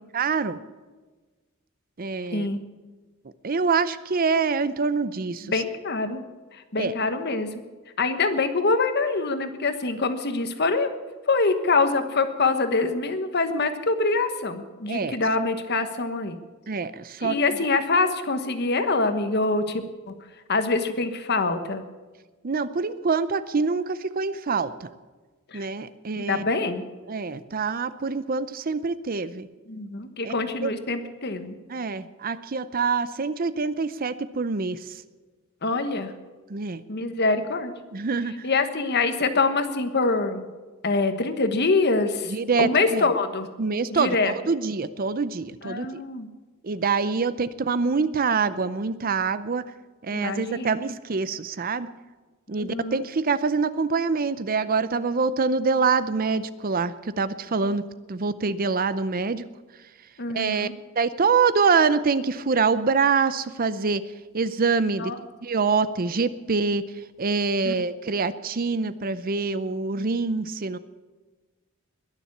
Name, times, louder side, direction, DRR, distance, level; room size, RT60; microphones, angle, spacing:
voice 1, 0.1-0.6 2.0-2.5 3.4-5.5 6.8-6.9 14.9-15.1 16.7-17.6 22.4-24.9 25.5-26.4 27.1-29.5 30.2-30.3 30.6-30.7 31.7-35.0 36.5-36.8 37.9-38.5 42.3-43.1 43.6-46.0 46.6-49.7 50.0-51.9 52.5-57.8 58.1-59.4 60.3-60.7 61.0-64.0 64.3-65.1 65.4-66.8 67.2-70.8, right 4 dB, 45° right, 15 dB, 0.6 m, -25 dB
voice 2, 2.3-2.6 5.4-6.2 6.5-7.5 8.0-10.9 11.3-16.4 17.2-20.1 20.5-21.8 25.5-25.6 26.2-26.8 29.7-31.5 35.6-36.1 36.9-37.7 38.4-40.5 40.8-42.3 42.6-43.5 43.9-44.3 45.6-46.3 50.1-50.7 52.6-53.0 60.2-60.7 65.0-65.1 67.6-67.8, left 3 dB, 55° left, 9 dB, 1.3 m, -25 dB
21.5 x 7.3 x 8.4 m, 1.3 s
head